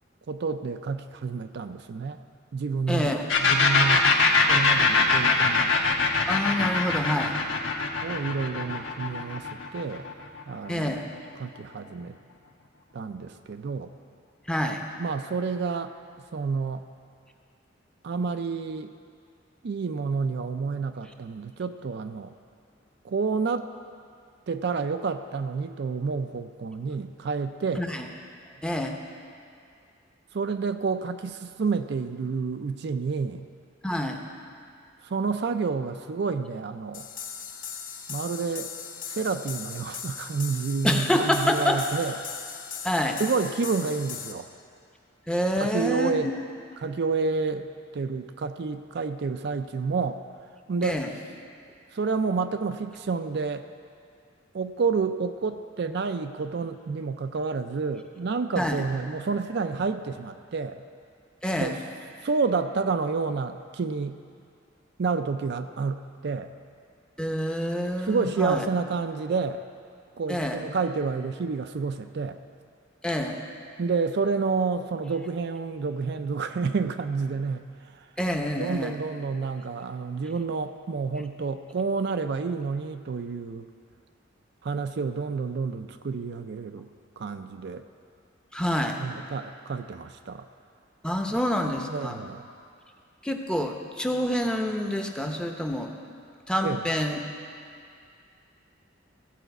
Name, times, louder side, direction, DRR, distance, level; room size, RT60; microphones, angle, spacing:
voice 1, 0.3-2.2 2.5-3.1 3.4-4.1 4.4-5.7 8.0-10.1 10.5-11.0 11.4-12.2 12.9-13.9 15.0-15.9 16.3-16.8 18.0-18.9 19.6-22.3 23.0-23.7 24.5-27.9 30.3-33.5 35.0-37.1 38.1-38.7 39.1-42.1 43.2-44.5 45.6-46.3 46.8-50.2 50.7-51.0 51.9-53.7 54.5-60.8 61.6-61.8 62.2-64.2 65.0-66.5 68.0-69.6 70.2-72.4 73.8-78.1 78.6-83.7 84.6-86.9 87.2-87.8 89.0-90.5 91.3-91.4 91.9-92.5 96.6-96.8, right 4 dB, 60° right, 8 dB, 0.4 m, -29 dB
voice 2, 2.9-3.3 6.3-7.4 10.7-11.1 14.5-14.8 27.8-28.1 28.6-29.0 33.8-34.2 40.8-41.8 42.8-43.2 45.3-46.2 50.8-51.1 58.6-58.8 61.4-61.8 67.2-68.6 70.3-70.6 73.0-73.4 78.2-78.9 88.5-89.0 91.0-92.2 93.2-95.9 96.5-97.2, equal, 5° left, 3 dB, 0.7 m, -27 dB
sound 1, 3.3-10.8, left 4 dB, 85° left, 1.1 m, -23 dB
sound 2, 36.9-44.3, left 7 dB, 45° left, 1.0 m, -38 dB
15.0 x 5.0 x 7.9 m, 2.3 s
head